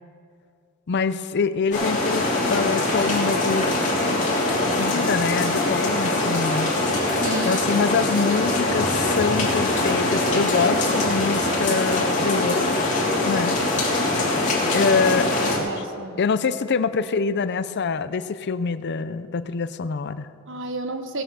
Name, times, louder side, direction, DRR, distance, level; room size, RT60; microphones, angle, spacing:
voice 1, 0.9-3.8 4.8-6.7 7.4-13.0 13.2-13.6 14.7-15.7 16.2-20.3, left 5 dB, 55° left, 13 dB, 0.5 m, -25 dB
sound 1, 1.7-15.6, left 2 dB, 35° left, 3.0 m, -23 dB
voice 2, 7.2-7.8 15.3-16.2 20.5-21.2, right 2 dB, 60° right, 7 dB, 1.1 m, -32 dB
17.5 x 7.5 x 6.9 m, 2.3 s
head